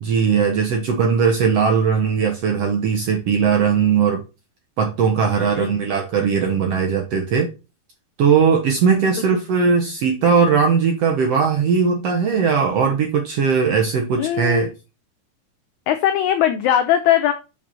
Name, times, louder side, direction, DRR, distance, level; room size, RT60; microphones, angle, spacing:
voice 1, 0.0-4.2 4.8-7.5 8.2-14.7, right 6 dB, 70° right, 2 dB, 1.5 m, -19 dB
voice 2, 14.2-14.7 15.9-17.3, left 10 dB, 90° left, 8 dB, 1.6 m, -20 dB
5.9 x 5.4 x 4.2 m, 0.29 s
omnidirectional pair, 4.1 m